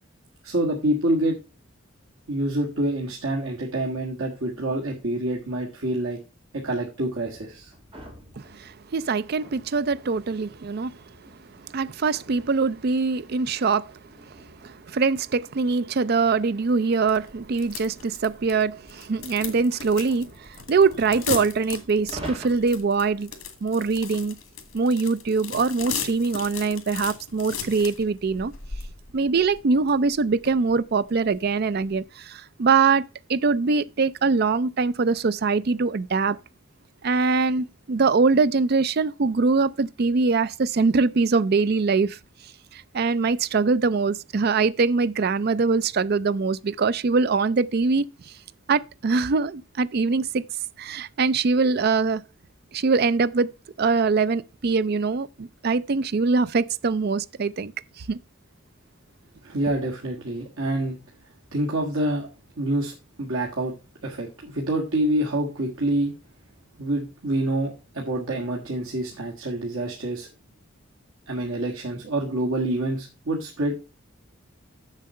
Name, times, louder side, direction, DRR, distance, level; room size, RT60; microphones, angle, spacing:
voice 1, 0.4-1.4 2.3-6.2 6.5-7.7 59.4-61.0 61.5-62.3 62.6-63.7 64.0-66.1 66.8-70.3 71.3-73.9, right 1 dB, 80° right, 1.6 m, -27 dB
sound 1, 7.0-16.7 17.4-22.6, right 1 dB, 25° right, 2.5 m, -47 dB
voice 2, 8.4-11.0 11.7-14.0 14.6-23.3 23.6-24.3 24.7-28.5 29.1-33.0 33.3-36.4 37.0-42.2 42.7-48.3 48.7-50.4 50.8-52.2 52.7-53.5 53.8-57.7 58.1-58.2, right 4 dB, 50° right, 0.4 m, -23 dB
sound 2, 17.1-32.0, left 6 dB, 90° left, 1.9 m, -37 dB
7.3 x 6.7 x 5.3 m
head